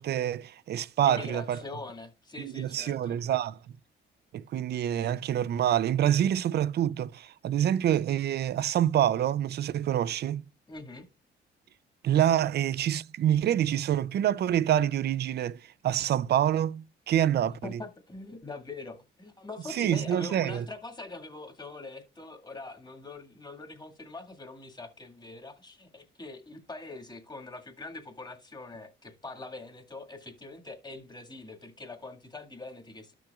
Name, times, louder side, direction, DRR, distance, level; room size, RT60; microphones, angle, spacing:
voice 1, 0.0-1.6 2.4-3.6 4.3-10.4 12.0-17.8 19.7-20.7, right 11 dB, 55° right, 0.4 m, -27 dB
voice 2, 1.0-3.1 10.7-11.1 17.6-33.1, left 3 dB, 20° left, 1.8 m, -43 dB
13.0 x 6.1 x 2.3 m
cardioid pair, 90°, 20 cm